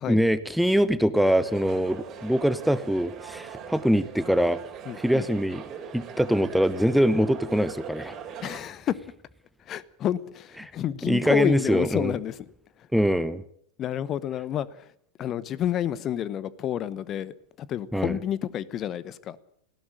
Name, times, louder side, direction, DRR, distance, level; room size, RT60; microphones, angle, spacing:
voice 1, 0.1-4.6 5.0-5.6 5.9-8.2 11.1-12.2 12.9-13.4 17.9-18.2, equal, ahead, 0.8 m, -23 dB
sound 1, 1.1-8.6, right 7 dB, 30° right, 4.1 m, -41 dB
voice 2, 4.9-5.2 8.4-8.9 9.7-12.4 13.8-14.7 15.2-19.4, left 10 dB, 30° left, 1.0 m, -29 dB
19.0 x 16.0 x 8.6 m
figure-of-eight pair, 90°, 0 cm